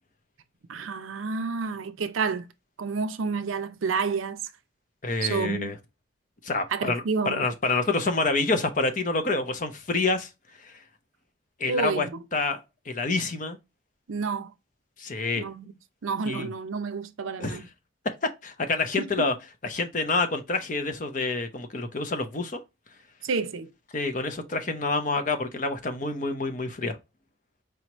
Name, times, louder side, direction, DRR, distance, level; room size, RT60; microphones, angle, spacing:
voice 1, 0.7-2.5 2.8-4.4 5.2-5.7 6.7-7.4 11.7-12.2 14.1-14.5 15.4-15.7 16.0-17.7 19.0-19.3 23.2-23.7, right 5 dB, 80° right, 0.5 m, -29 dB
voice 2, 5.0-5.8 6.4-10.3 10.7-10.8 11.6-12.1 12.3-12.6 12.9-13.6 15.0-15.4 16.2-16.5 17.4-17.6 18.4-19.3 19.6-22.6 23.9-27.0, left 3 dB, 40° left, 0.7 m, -27 dB
4.7 x 3.0 x 3.0 m
head